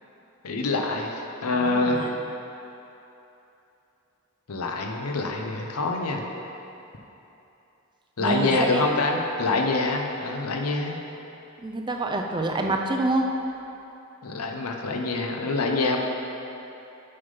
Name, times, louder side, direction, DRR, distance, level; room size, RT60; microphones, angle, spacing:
voice 1, 0.4-1.1 1.4-2.0 4.5-6.2 8.2-11.0 14.2-16.0, left 3 dB, 90° left, 2 dB, 0.8 m, -25 dB
voice 2, 1.5-2.2 8.2-8.8 11.6-13.3, right 2 dB, 20° right, 3 dB, 0.4 m, -27 dB
6.7 x 5.5 x 5.4 m, 2.9 s
head